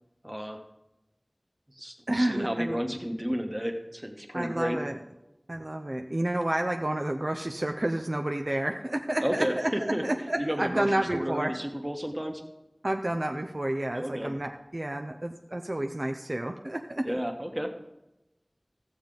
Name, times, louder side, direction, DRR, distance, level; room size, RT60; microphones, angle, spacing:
voice 1, 0.2-0.6 1.8-4.8 9.2-12.4 13.9-14.3 17.0-17.7, equal, 15° right, 4 dB, 1.2 m, -32 dB
voice 2, 2.1-2.8 4.3-5.0 5.5-11.5 12.8-17.2, right 1 dB, 50° right, 4 dB, 0.5 m, -30 dB
15.0 x 7.2 x 3.8 m, 0.95 s
wide cardioid pair, 40°, 0 cm